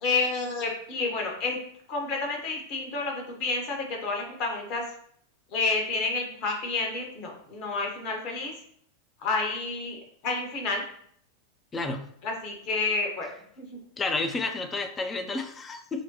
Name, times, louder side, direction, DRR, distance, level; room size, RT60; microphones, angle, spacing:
voice 1, 0.0-1.6 1.9-4.8 5.5-8.5 9.2-10.0 10.2-10.8 12.2-13.3 13.6-13.7, left 3 dB, 40° left, 1 dB, 1.1 m, -29 dB
voice 2, 11.7-12.1 14.0-16.0, left 3 dB, 20° left, 7 dB, 0.5 m, -30 dB
6.3 x 2.2 x 2.9 m, 0.65 s
figure-of-eight pair, 90°, 0 cm